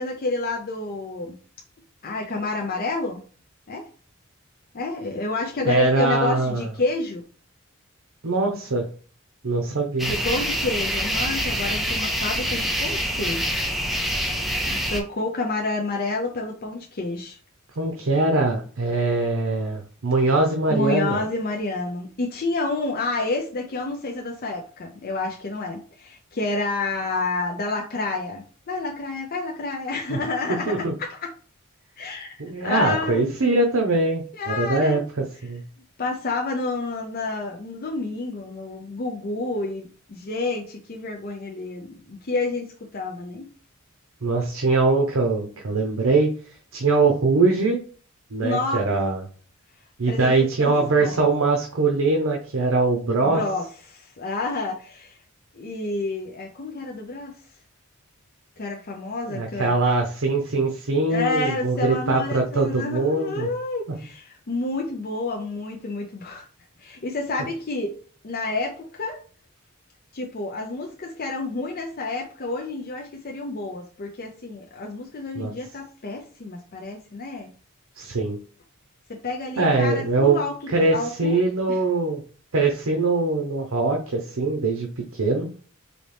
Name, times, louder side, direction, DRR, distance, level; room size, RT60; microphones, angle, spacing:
voice 1, 0.0-1.4 2.0-3.2 3.7-3.9 4.7-7.2 10.1-13.5 14.7-17.4 20.7-31.3 32.0-33.3 34.3-35.0 36.0-43.4 48.4-48.8 50.1-51.2 53.2-55.2 55.5-57.4 58.6-59.7 61.1-66.5 66.8-67.9 68.2-69.2 70.1-77.5 79.1-80.6 80.9-81.4 81.7-81.8, left 3 dB, 45° left, 0 dB, 0.6 m, -29 dB
voice 2, 5.6-6.7 8.2-8.8 9.4-10.2 17.8-21.2 30.1-30.2 30.7-30.9 32.4-35.6 44.2-46.3 46.7-47.8 48.3-49.2 50.0-53.4 59.3-63.5 75.3-75.5 78.0-78.4 79.6-80.4 80.7-82.2 82.5-85.5, right 3 dB, 70° right, 2 dB, 0.7 m, -22 dB
sound 1, 10.0-15.0, equal, ahead, 0.6 m, -26 dB
4.1 x 2.8 x 3.3 m, 0.41 s
head